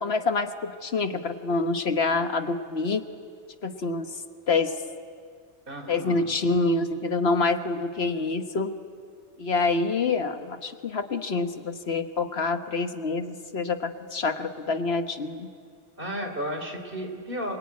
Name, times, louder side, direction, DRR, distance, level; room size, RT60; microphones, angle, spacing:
voice 1, 0.0-3.0 3.6-4.1 4.5-4.7 5.9-8.7 9.4-15.5, left 3 dB, 60° left, 8 dB, 1.4 m, -26 dB
voice 2, 5.7-6.3 16.0-17.6, equal, 50° right, 5 dB, 3.4 m, -33 dB
27.0 x 23.5 x 9.5 m, 2.2 s
omnidirectional pair, 1.2 m